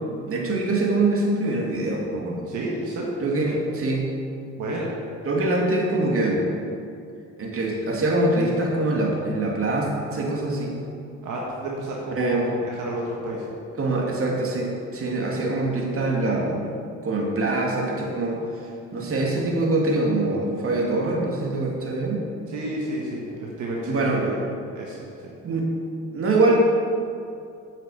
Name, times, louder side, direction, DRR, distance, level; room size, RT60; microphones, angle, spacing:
voice 1, 0.3-2.5 3.2-4.1 5.3-6.4 7.4-10.7 12.1-12.5 13.8-16.6 17.0-18.4 18.9-22.3 23.9-24.2 25.4-25.7 26.1-26.6, right 2 dB, 45° right, -2 dB, 2.3 m, -24 dB
voice 2, 2.5-3.1 4.6-4.9 11.2-13.5 22.5-24.4 24.8-25.3, right 1 dB, 75° right, -3 dB, 1.7 m, -31 dB
8.7 x 6.5 x 7.0 m, 2.5 s
cardioid pair, 90°, 30 cm